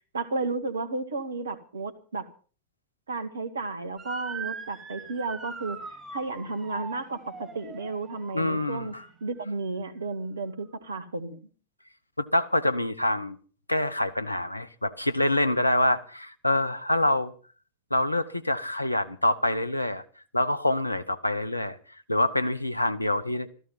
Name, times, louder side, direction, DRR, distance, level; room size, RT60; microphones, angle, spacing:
voice 1, 0.1-2.3 3.1-5.8 6.1-8.9 9.2-11.4, right 3 dB, 70° right, 1.8 m, -33 dB
Motor vehicle (road) / Siren, 4.0-9.2, right 4 dB, 15° right, 5.8 m, -41 dB
voice 2, 8.3-8.9 12.2-13.4 13.7-17.3 17.9-20.0 20.3-21.8 22.1-23.5, left 1 dB, 85° left, 1.0 m, -26 dB
14.5 x 14.5 x 5.6 m
figure-of-eight pair, 90°, 0 cm